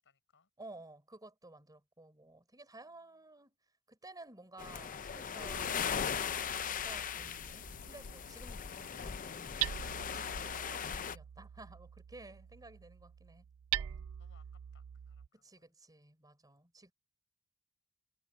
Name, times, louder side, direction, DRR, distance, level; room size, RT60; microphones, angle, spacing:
voice 1, 0.0-0.5 2.9-3.0 12.6-12.9 13.8-15.8 16.5-16.6, left 5 dB, 60° left, 7.5 m, -72 dB
voice 2, 0.6-3.6 3.9-6.2 6.7-13.4 13.7-14.0 15.4-16.9, right 2 dB, 15° right, 4.9 m, -55 dB
sound 1, 4.6-11.2, left 7 dB, 40° left, 0.6 m, -39 dB
Hammer, 5.5-15.3, right 12 dB, 65° right, 0.4 m, -44 dB
head